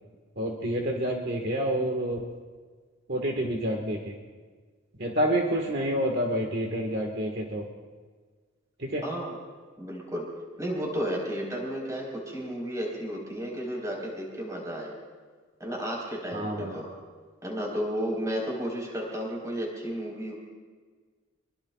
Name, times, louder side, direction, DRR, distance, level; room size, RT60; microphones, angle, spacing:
voice 1, 0.4-2.2 3.1-4.1 5.0-7.6 8.8-9.0 16.3-16.8, equal, 50° right, 1 dB, 1.6 m, -28 dB
voice 2, 9.0-9.4 9.8-10.3 10.6-14.9 15.6-17.0 17.4-20.3, equal, 15° right, -2 dB, 4.0 m, -33 dB
24.5 x 23.0 x 2.4 m, 1.5 s
head